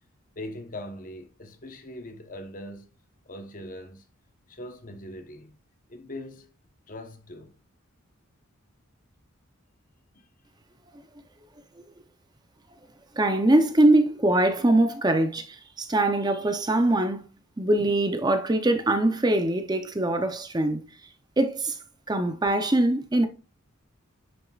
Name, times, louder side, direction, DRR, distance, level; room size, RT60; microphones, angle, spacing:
voice 1, 0.4-2.9 3.3-4.0 4.5-5.6 5.9-6.5 6.9-7.6 10.1-10.3, left 1 dB, 40° left, 1.0 m, -41 dB
voice 2, 13.2-17.3 17.6-20.8 21.4-21.8 22.1-23.3, right 1 dB, 20° right, 0.6 m, -22 dB
9.5 x 6.4 x 2.4 m
head